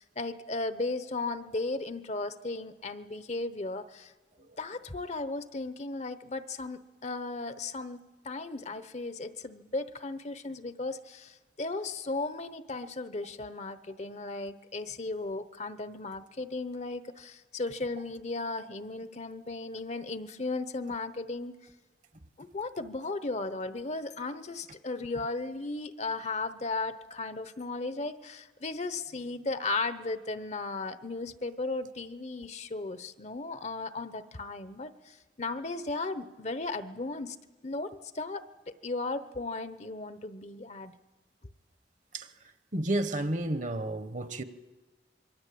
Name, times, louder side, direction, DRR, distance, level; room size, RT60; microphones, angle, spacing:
voice 1, 0.0-4.1 4.6-8.0 8.2-21.5 22.4-37.4 37.6-40.9, left 3 dB, 40° left, 0.9 m, -36 dB
voice 2, 42.7-44.4, right 1 dB, 45° right, 1.2 m, -31 dB
26.0 x 23.0 x 8.5 m
head